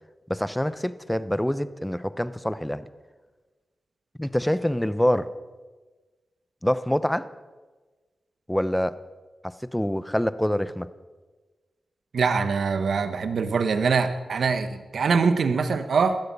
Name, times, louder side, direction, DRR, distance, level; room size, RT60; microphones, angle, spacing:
voice 1, 0.3-2.9 4.2-5.3 6.6-7.3 8.5-9.0 9.4-10.9, equal, 5° left, 15 dB, 0.9 m, -25 dB
voice 2, 12.1-16.2, right 5 dB, 75° right, 10 dB, 1.2 m, -23 dB
18.5 x 13.5 x 5.5 m, 1.3 s
cardioid pair, 45°, 0 cm